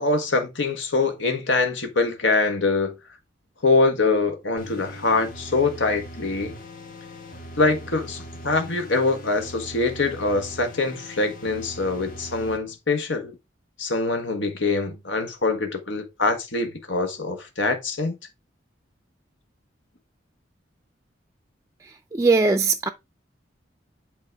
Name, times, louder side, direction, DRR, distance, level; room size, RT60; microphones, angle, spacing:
voice 1, 0.0-2.9 3.6-6.5 7.6-13.3 13.8-18.2, left 3 dB, 85° left, 1.6 m, -24 dB
sound 1, 4.6-12.6, equal, 45° left, 1.6 m, -40 dB
voice 2, 21.8-22.9, right 4 dB, 15° right, 0.4 m, -21 dB
8.6 x 4.2 x 4.6 m
head